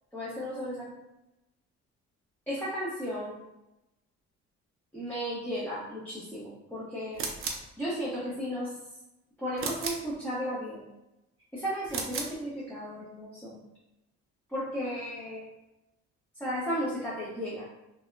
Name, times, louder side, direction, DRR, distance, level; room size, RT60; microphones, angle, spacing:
voice 1, 0.1-0.8 2.5-3.3 4.9-7.2 7.8-8.7 9.4-10.9 11.5-13.6 14.5-15.5 16.4-17.7, equal, 5° left, -9 dB, 0.7 m, -34 dB
sound 1, 7.1-7.7 9.6-10.1 11.8-12.4, right 4 dB, 45° right, 0.5 m, -34 dB
2.7 x 2.2 x 2.3 m, 0.94 s
cardioid pair, 90°, 30 cm